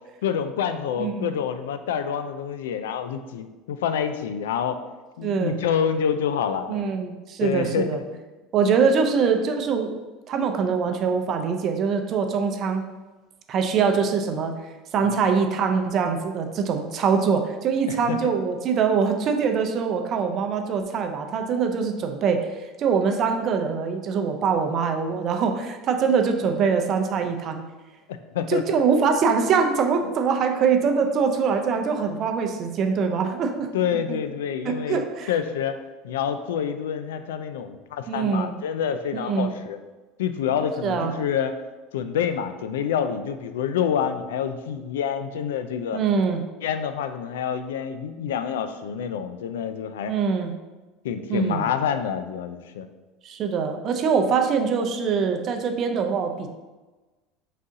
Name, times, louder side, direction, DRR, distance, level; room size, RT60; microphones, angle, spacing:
voice 1, 0.2-4.8 5.2-6.9 7.4-8.0 15.0-15.2 17.9-18.3 25.1-25.2 28.3-28.8 33.7-35.8 36.0-39.8 40.2-41.5 41.9-46.0 46.6-50.2 51.0-52.9, left 8 dB, 85° left, 9 dB, 0.3 m, -27 dB
voice 2, 1.0-1.3 5.2-5.6 6.7-8.0 8.5-10.0 10.3-12.8 13.5-14.5 14.9-22.5 22.8-27.6 28.5-33.7 34.6-35.3 38.1-38.5 39.1-39.5 40.8-41.1 45.9-46.4 50.1-50.5 51.3-51.7 53.2-56.5, right 6 dB, 45° right, 5 dB, 0.5 m, -23 dB
4.0 x 3.6 x 2.6 m, 1.2 s
hypercardioid pair, 95°, 0 cm